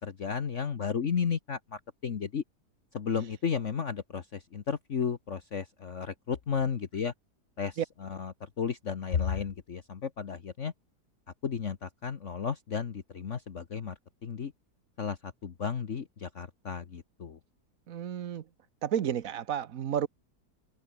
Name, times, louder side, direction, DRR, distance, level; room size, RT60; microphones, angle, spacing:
voice 1, 0.0-2.4 2.9-7.1 7.6-10.7 11.4-13.9 14.2-14.5 15.0-17.4, left 6 dB, 50° left, 1.5 m, -33 dB
voice 2, 17.9-18.4 18.8-20.1, right 9 dB, 60° right, 1.3 m, -31 dB
omnidirectional pair, 1.8 m